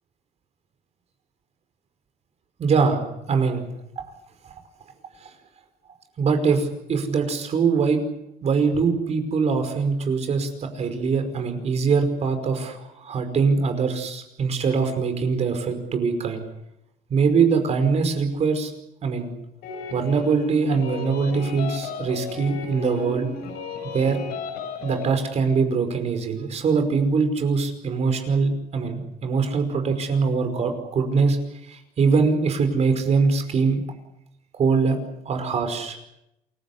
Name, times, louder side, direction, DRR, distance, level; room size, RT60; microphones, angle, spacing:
voice 1, 2.6-3.7 5.2-5.3 6.2-8.0 8.4-16.4 17.1-18.7 19.0-19.3 19.9-23.3 23.8-24.2 24.8-31.4 31.7-33.8 34.5-35.0 35.3-36.0, right 5 dB, 45° right, 7 dB, 5.2 m, -23 dB
sound 1, 19.6-25.1, left 5 dB, 85° left, 6.8 m, -35 dB
28.0 x 16.0 x 9.8 m, 0.85 s
cardioid pair, 125°, 16 cm